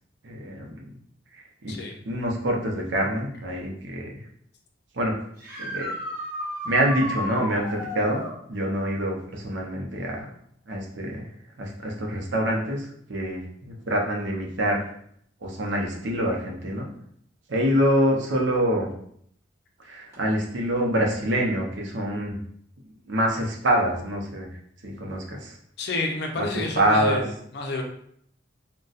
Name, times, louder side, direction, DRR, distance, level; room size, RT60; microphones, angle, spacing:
voice 1, 0.2-0.9 1.6-1.8 2.0-4.2 4.9-5.1 5.6-5.9 6.6-8.2 8.5-10.3 10.7-11.3 11.6-14.8 15.4-16.9 17.5-18.9 19.8-22.4 23.1-24.5 24.8-25.5 26.4-26.5 26.8-27.2, right 1 dB, 75° right, -1 dB, 0.7 m, -25 dB
sound 1, 5.4-8.4 11.7-11.8 13.8-13.9 20.1-20.2, left 1 dB, 15° right, 1.1 m, -33 dB
voice 2, 25.8-27.8, left 2 dB, 60° left, 2 dB, 0.5 m, -29 dB
3.9 x 2.2 x 2.4 m, 0.67 s
head